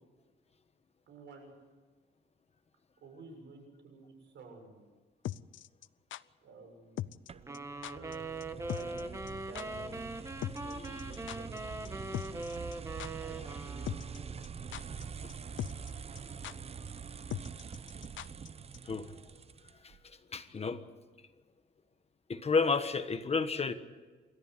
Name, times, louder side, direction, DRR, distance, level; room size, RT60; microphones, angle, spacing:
voice 1, 1.1-1.5 3.0-4.8 6.4-7.0 7.3-10.1 10.5-11.6 11.8-12.4 13.2-14.2, right 3 dB, 70° right, 4 dB, 7.0 m, -52 dB
sound 1, 5.2-6.2 7.0-7.3 7.5-7.6 7.8-8.2 8.4-8.5 8.7-9.0 9.3-9.4 9.6-9.7 10.4-11.6 11.9-12.0 12.1-12.7 13.0-13.1 13.9-14.2 14.4-15.0 15.3-15.4 15.6-16.2 16.4-16.5 17.3-18.5 18.7-18.8, left 13 dB, 85° left, 0.6 m, -39 dB
sound 2, 7.3-20.0, right 6 dB, 30° right, 0.7 m, -45 dB
sound 3, 7.5-14.4, right 2 dB, 15° right, 1.3 m, -41 dB
voice 2, 20.3-20.8 22.3-23.7, left 4 dB, 30° left, 9 dB, 1.3 m, -30 dB
29.0 x 14.0 x 8.4 m, 1.4 s
cardioid pair, 135°, 19 cm